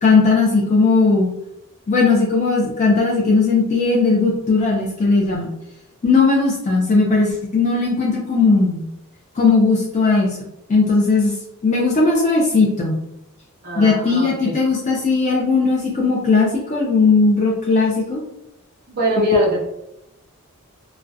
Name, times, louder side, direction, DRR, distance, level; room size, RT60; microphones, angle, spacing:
voice 1, 0.0-1.3 1.9-5.5 6.0-8.8 9.4-10.4 10.7-11.3 11.6-13.0 13.8-18.2, left 4 dB, 30° left, -3 dB, 0.4 m, -17 dB
voice 2, 13.6-14.5 18.9-19.7, equal, 45° right, -5 dB, 0.6 m, -21 dB
2.5 x 2.1 x 2.3 m, 0.86 s
head